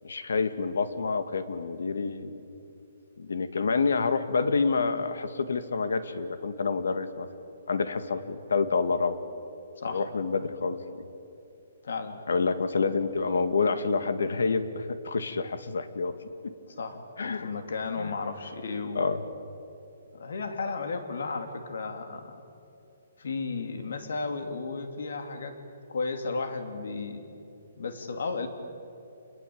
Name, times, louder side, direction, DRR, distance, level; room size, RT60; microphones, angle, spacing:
voice 1, 0.0-2.3 3.2-7.3 7.7-9.2 9.9-10.8 12.3-16.1 16.4-16.5 17.2-17.5 18.0-18.1 19.0-19.2, left 4 dB, 85° left, 11 dB, 2.1 m, -28 dB
voice 2, 11.8-12.2 16.7-19.1 20.1-22.3 23.2-25.6 25.9-27.2 27.8-28.5, left 4 dB, 65° left, 7 dB, 3.0 m, -34 dB
28.5 x 21.5 x 8.8 m, 2.7 s
hypercardioid pair, 180°, 0 cm